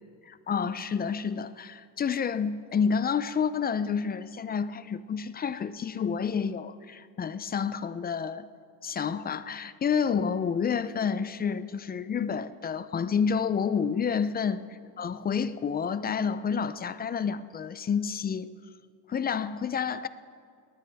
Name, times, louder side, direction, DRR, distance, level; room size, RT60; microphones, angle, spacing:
voice 1, 0.3-8.5 8.8-14.6 15.0-18.5 19.1-20.1, left 6 dB, 20° left, 14 dB, 0.4 m, -29 dB
20.0 x 19.0 x 3.5 m, 2.3 s
cardioid pair, 115°, 45 cm